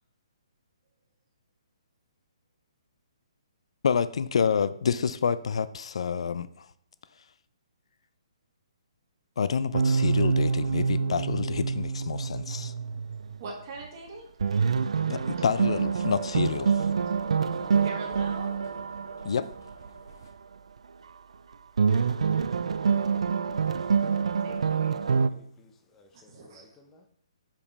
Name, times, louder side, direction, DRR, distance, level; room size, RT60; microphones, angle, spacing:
voice 1, 3.8-6.7 9.4-12.7 15.1-16.8 19.2-19.5, left 6 dB, 65° left, 15 dB, 0.4 m, -28 dB
sound 1, 9.7-13.5 13.8-13.9 14.4-20.2 21.8-25.3, right 5 dB, 80° right, 0.4 m, -26 dB
voice 2, 13.4-14.3 17.8-18.5 23.7-25.1 26.1-26.8, right 3 dB, 35° right, 1 dB, 1.5 m, -43 dB
sound 2, 15.2-20.3, left 4 dB, 45° left, 0.9 m, -50 dB
voice 3, 23.5-24.6 25.0-27.0, left 3 dB, 10° left, 3 dB, 0.7 m, -57 dB
5.2 x 5.1 x 4.1 m, 0.70 s
hypercardioid pair, 160°, 3 cm